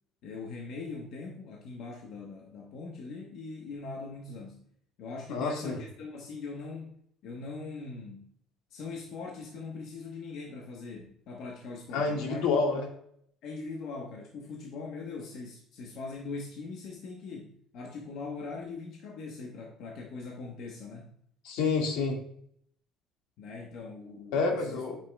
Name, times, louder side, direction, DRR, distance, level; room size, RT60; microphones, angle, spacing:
voice 1, 0.2-4.7 5.0-7.0 7.2-8.3 8.7-12.5 13.4-21.1 23.4-24.8, left 4 dB, 60° left, 0 dB, 1.1 m, -41 dB
voice 2, 5.3-5.8 11.9-12.9 21.5-22.2 24.3-25.0, left 4 dB, 80° left, 1 dB, 1.8 m, -28 dB
8.8 x 5.9 x 2.3 m, 0.67 s
cardioid pair, 155°, 0 cm